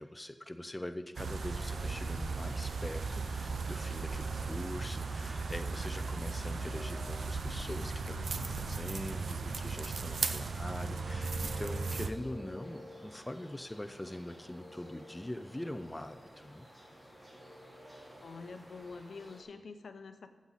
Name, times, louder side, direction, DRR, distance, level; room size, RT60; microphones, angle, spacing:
voice 1, 0.0-16.7, left 1 dB, 15° left, 8 dB, 0.4 m, -43 dB
sound 1, 1.1-12.1, right 4 dB, 90° right, 0.5 m, -36 dB
sound 2, 1.4-19.4, equal, 25° right, 2.6 m, -52 dB
voice 2, 18.2-20.3, left 4 dB, 85° left, 8 dB, 0.7 m, -46 dB
14.5 x 7.3 x 4.1 m, 1.3 s
wide cardioid pair, 125°, 0 cm